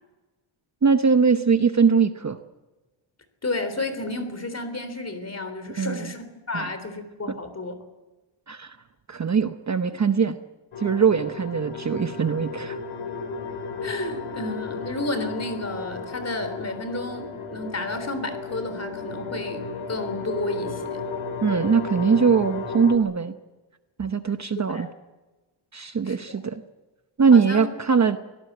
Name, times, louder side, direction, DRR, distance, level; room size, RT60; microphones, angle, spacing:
voice 1, 0.8-2.4 5.8-6.1 6.5-6.7 8.5-8.8 9.1-10.4 10.8-12.8 21.4-23.3 24.0-24.9 25.7-26.6 27.2-28.2, right 5 dB, 35° right, 9 dB, 0.9 m, -21 dB
voice 2, 3.4-7.7 13.8-21.0 24.7-24.8 26.1-26.4 27.3-27.6, left 2 dB, 30° left, 10 dB, 3.6 m, -32 dB
sound 1, 10.7-23.0, left 4 dB, 70° left, 3.0 m, -34 dB
24.5 x 18.0 x 8.0 m, 1.1 s
wide cardioid pair, 155°, 50 cm